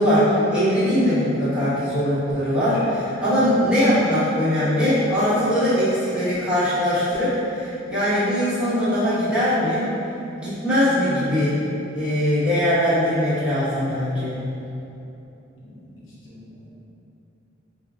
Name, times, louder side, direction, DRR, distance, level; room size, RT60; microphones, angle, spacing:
voice 1, 0.0-9.9 10.4-11.6 11.9-14.4, equal, 5° right, -14 dB, 1.1 m, -21 dB
voice 2, 15.6-16.8, left 1 dB, 70° left, -7 dB, 0.8 m, -46 dB
4.6 x 2.5 x 2.3 m, 2.9 s
head